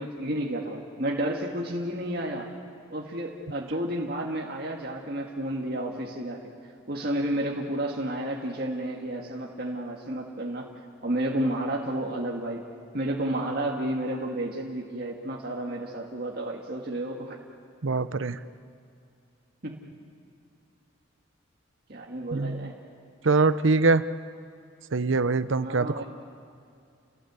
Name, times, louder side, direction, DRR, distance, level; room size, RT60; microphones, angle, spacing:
voice 1, 0.0-2.5 2.9-6.4 6.9-10.7 11.0-12.6 12.9-17.4 19.6-19.8 21.9-22.7 25.6-26.0, right 1 dB, 50° right, -1 dB, 1.9 m, -31 dB
voice 2, 17.8-18.4 22.3-22.7 23.2-24.0 24.9-26.0, right 3 dB, 80° right, 14 dB, 0.7 m, -23 dB
29.5 x 18.0 x 8.2 m, 2.5 s
head